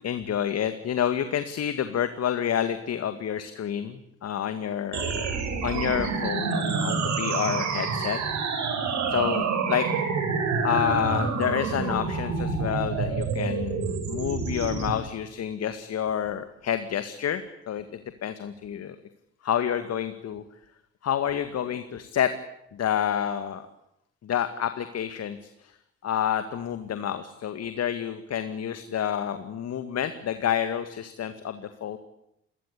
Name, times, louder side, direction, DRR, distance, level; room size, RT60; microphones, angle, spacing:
voice 1, 0.0-8.2 9.1-9.9 10.6-19.0 19.4-20.4 21.0-22.3 22.7-23.7 24.2-25.7 26.0-32.0, left 9 dB, 50° left, 9 dB, 2.2 m, -29 dB
sound 1, 4.9-14.9, right 5 dB, 55° right, 6.7 m, -28 dB
29.0 x 23.0 x 8.6 m, 0.81 s
hypercardioid pair, 50°, 33 cm